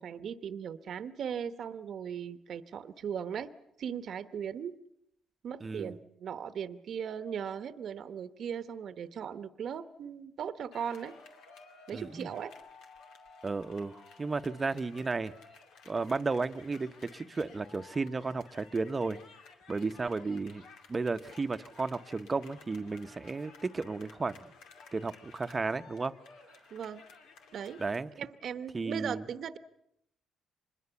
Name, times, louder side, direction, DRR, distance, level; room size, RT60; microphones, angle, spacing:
voice 1, 0.0-3.5 3.8-4.8 5.4-11.1 11.9-12.5 26.7-27.0 27.5-27.8 28.2-29.6, right 8 dB, 65° right, 13 dB, 1.0 m, -38 dB
voice 2, 5.6-6.0 11.9-12.3 13.4-15.3 15.9-19.2 19.7-20.6 20.9-24.4 24.9-26.1 27.8-28.1 28.7-29.2, right 4 dB, 30° right, 11 dB, 0.9 m, -33 dB
sound 1, 10.7-28.0, left 4 dB, 85° left, 2.4 m, -55 dB
25.5 x 21.0 x 7.0 m, 0.76 s
cardioid pair, 90°, 0 cm